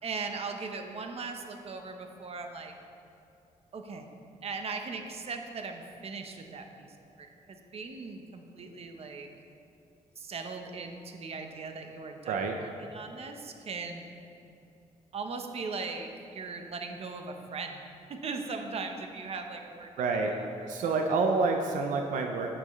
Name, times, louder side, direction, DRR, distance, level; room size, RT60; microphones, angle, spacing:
voice 1, 0.0-2.7 3.7-4.1 4.4-6.9 7.2-9.3 10.2-14.1 15.1-17.8 18.1-19.9 20.6-21.0, right 4 dB, 50° right, 4 dB, 1.0 m, -39 dB
voice 2, 12.3-12.6 20.0-20.3 20.7-22.5, right 4 dB, 85° right, 3 dB, 0.7 m, -28 dB
17.5 x 6.1 x 3.2 m, 2.6 s
cardioid pair, 95°, 13 cm